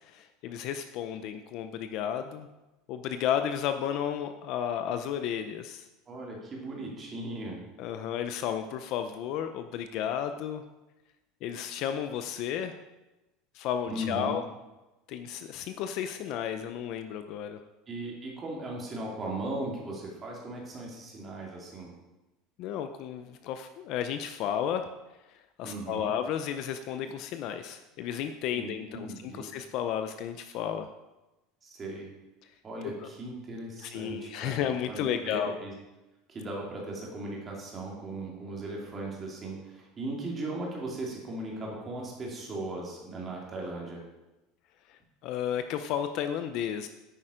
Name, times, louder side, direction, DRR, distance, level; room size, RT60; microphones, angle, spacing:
voice 1, 0.1-2.5 2.9-5.8 7.8-10.6 11.4-12.8 13.5-14.4 15.1-17.6 22.6-24.9 25.6-30.9 33.0-33.1 33.8-35.5 44.9-46.9, left 9 dB, 40° left, 8 dB, 0.6 m, -33 dB
voice 2, 6.1-7.6 13.9-14.3 17.9-21.9 25.6-26.1 28.5-29.5 31.6-32.1 32.6-35.7 36.3-44.0, right 2 dB, 20° right, -2 dB, 2.6 m, -38 dB
10.0 x 8.9 x 5.0 m, 1.0 s
cardioid pair, 175°, 0 cm